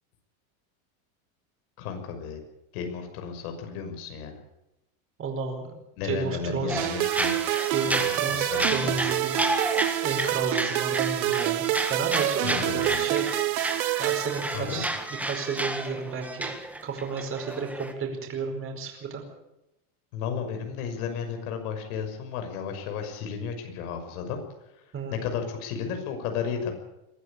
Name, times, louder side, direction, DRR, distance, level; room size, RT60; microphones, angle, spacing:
voice 1, 1.8-2.4 2.7-4.4 6.0-7.3 7.9-8.9 12.4-13.0 14.5-14.8 20.1-24.4 25.1-26.7, left 6 dB, 80° left, 5 dB, 6.1 m, -33 dB
voice 2, 5.2-5.6 6.0-6.9 7.7-9.4 10.0-11.6 11.9-13.3 14.0-16.5 16.8-19.2 24.9-25.2, right 5 dB, 30° right, 3 dB, 4.8 m, -32 dB
sound 1, 6.7-17.9, right 1 dB, 5° right, 1.8 m, -31 dB
sound 2, 6.8-15.0, right 18 dB, 80° right, 1.0 m, -28 dB
22.0 x 13.5 x 8.5 m, 0.90 s
supercardioid pair, 150°, 43 cm